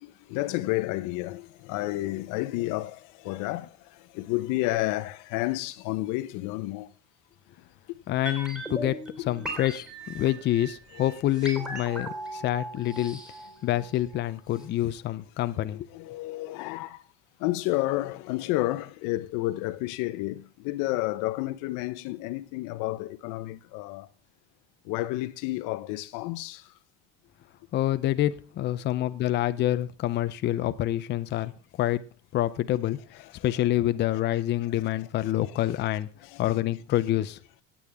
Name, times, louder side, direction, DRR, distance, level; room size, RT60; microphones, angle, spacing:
voice 1, 0.0-6.9 10.9-11.1 15.7-17.0 17.4-24.1 24.8-26.7 33.2-33.4 34.0-34.1 34.8-34.9 35.2-35.6 36.2-36.4, left 18 dB, 85° left, 1.0 m, -31 dB
voice 2, 8.1-9.0 9.3-13.2 13.6-15.9 27.7-31.5 31.8-32.0 32.3-33.0 33.4-36.1 36.4-37.4, left 14 dB, 35° left, 0.6 m, -27 dB
sound 1, 8.3-14.3 14.6-14.7, right 1 dB, 5° right, 3.2 m, -38 dB
18.0 x 8.6 x 3.6 m
cardioid pair, 170°, 30 cm